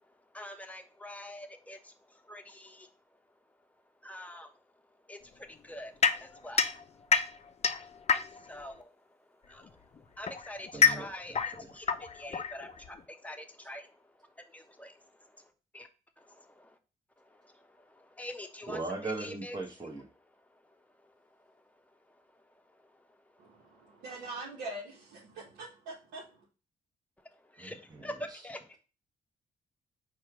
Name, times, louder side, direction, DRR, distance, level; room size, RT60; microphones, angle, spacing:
voice 1, 0.3-2.9 4.0-4.5 5.1-6.8 8.3-9.2 9.4-15.9 16.2-16.8 17.2-19.6 21.0-21.1 22.8-22.9 27.4-28.8, left 1 dB, 10° left, 0.9 m, -46 dB
sound 1, 6.0-8.6 9.6-13.0, left 6 dB, 40° left, 0.5 m, -29 dB
voice 2, 10.7-11.1 18.7-20.0 27.6-28.1, right 3 dB, 25° right, 1.0 m, -38 dB
voice 3, 23.4-26.4, right 2 dB, 85° right, 1.0 m, -43 dB
4.3 x 2.4 x 4.8 m
supercardioid pair, 50°, 17 cm